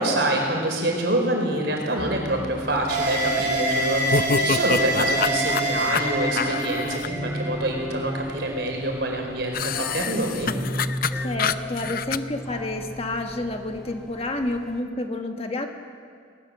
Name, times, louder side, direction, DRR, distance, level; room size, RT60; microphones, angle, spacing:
voice 1, 0.0-10.5, right 1 dB, 65° right, 1 dB, 4.7 m, -26 dB
sound 1, 2.0-14.8, equal, 5° left, 2.0 m, -37 dB
sound 2, 2.9-8.2, right 1 dB, 45° right, 4.9 m, -26 dB
sound 3, 4.1-7.1 9.5-12.2, left 6 dB, 50° left, 0.6 m, -27 dB
voice 2, 11.2-15.7, left 2 dB, 30° left, 4 dB, 1.4 m, -29 dB
20.0 x 19.5 x 7.7 m, 2.2 s
head